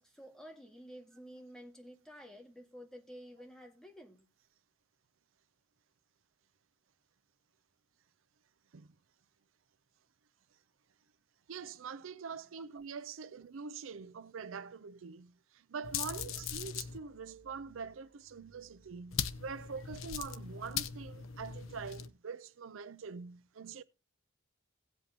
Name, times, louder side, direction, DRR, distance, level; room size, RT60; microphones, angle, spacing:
voice 1, 0.0-4.3 12.6-12.7 16.3-16.4 19.8-19.9, equal, 5° left, 1.8 m, -52 dB
voice 2, 11.5-23.8, right 5 dB, 75° right, 0.5 m, -44 dB
sound 1, 15.8-17.0 19.1-22.1, left 8 dB, 80° left, 0.7 m, -39 dB
sound 2, 15.9-21.8, right 1 dB, 35° left, 5.7 m, -66 dB
17.5 x 8.0 x 2.8 m
head